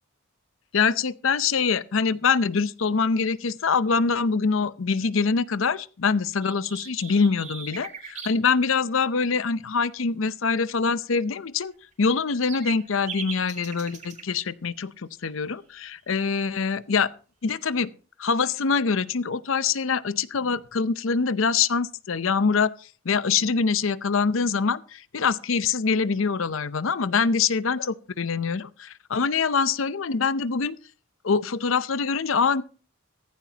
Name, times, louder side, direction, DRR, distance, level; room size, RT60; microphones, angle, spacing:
voice 1, 0.7-11.7 12.0-17.1 17.4-17.9 18.2-22.7 23.0-30.8 31.2-32.6, left 5 dB, 75° left, 0.6 m, -24 dB
sound 1, 6.4-8.4 11.9-14.2, right 5 dB, 35° right, 2.9 m, -39 dB
15.5 x 15.0 x 2.9 m
head